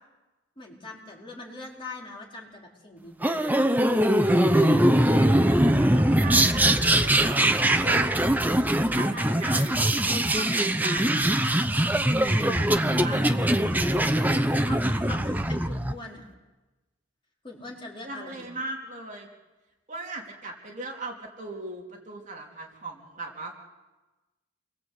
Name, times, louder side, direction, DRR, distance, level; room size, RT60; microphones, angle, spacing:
voice 1, 0.6-3.8 9.4-10.0 12.0-13.4 14.7-16.3 17.4-18.5, left 2 dB, 25° left, -2 dB, 4.8 m, -42 dB
sound 1, 3.2-15.9, right 1 dB, 10° right, 0.9 m, -22 dB
voice 2, 5.3-8.2 9.0-9.7 10.0-11.2 12.7-13.2 13.9-14.4 18.0-19.3 19.9-23.5, right 2 dB, 40° right, -1 dB, 3.4 m, -38 dB
28.5 x 22.0 x 8.3 m, 1.2 s
head